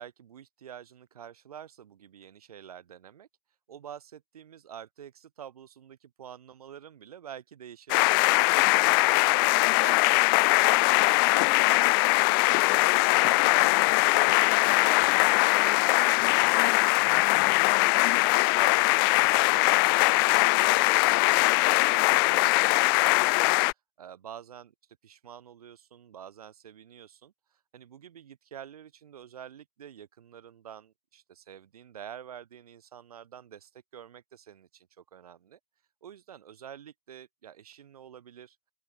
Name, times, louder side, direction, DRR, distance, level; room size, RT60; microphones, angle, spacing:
voice 1, 0.0-3.3 3.7-13.4 13.7-15.3 15.5-18.8 19.1-24.7 25.0-35.6 36.0-38.6, right 9 dB, 85° right, 4.2 m, -48 dB
sound 1, 7.9-23.7, left 30 dB, 40° left, 0.7 m, -22 dB
open air
hypercardioid pair, 145°, 19 cm